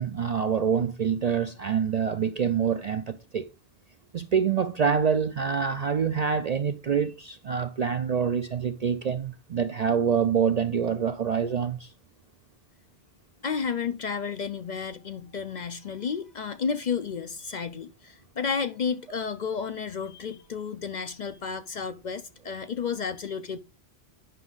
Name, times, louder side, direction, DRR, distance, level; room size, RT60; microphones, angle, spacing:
voice 1, 0.0-3.5 4.1-11.9, right 7 dB, 55° right, 0.4 m, -26 dB
voice 2, 13.4-23.6, left 6 dB, 50° left, 0.6 m, -32 dB
9.2 x 6.0 x 3.9 m
omnidirectional pair, 1.1 m